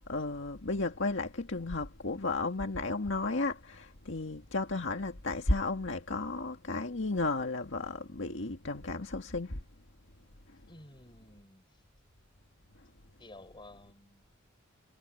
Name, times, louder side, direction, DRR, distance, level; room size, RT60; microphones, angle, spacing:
voice 1, 0.1-9.6, left 2 dB, 65° left, 1.9 m, -33 dB
voice 2, 10.7-11.6 13.2-14.3, left 2 dB, 25° left, 6.2 m, -53 dB
head